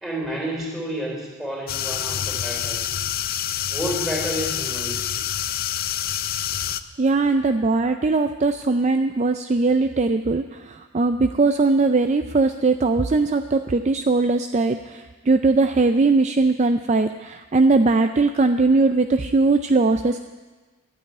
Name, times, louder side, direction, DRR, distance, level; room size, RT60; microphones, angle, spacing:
voice 1, 0.0-2.8 3.7-5.2, equal, ahead, -2 dB, 3.4 m, -30 dB
sound 1, 1.7-6.8, left 10 dB, 40° left, 0.4 m, -27 dB
voice 2, 7.0-20.2, right 3 dB, 30° right, 8 dB, 0.4 m, -20 dB
12.0 x 8.8 x 9.4 m, 1.3 s
head